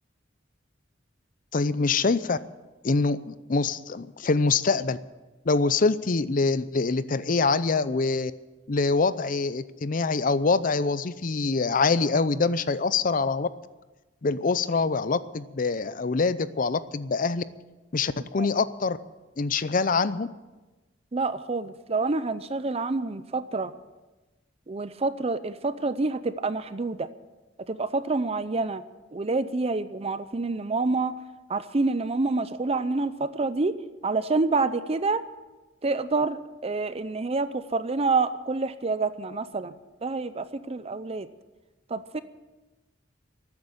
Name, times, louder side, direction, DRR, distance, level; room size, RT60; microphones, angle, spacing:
voice 1, 1.5-2.4 2.8-5.0 5.5-8.3 8.7-13.5 14.2-17.4 17.9-19.0 19.4-20.3, left 4 dB, 45° left, 15 dB, 0.6 m, -25 dB
voice 2, 21.1-23.7 24.7-27.1 27.7-28.8 29.1-31.1 31.5-35.2 35.8-39.7 40.0-41.3 41.9-42.2, right 3 dB, 30° right, 13 dB, 0.6 m, -27 dB
13.0 x 9.6 x 9.0 m, 1.1 s
head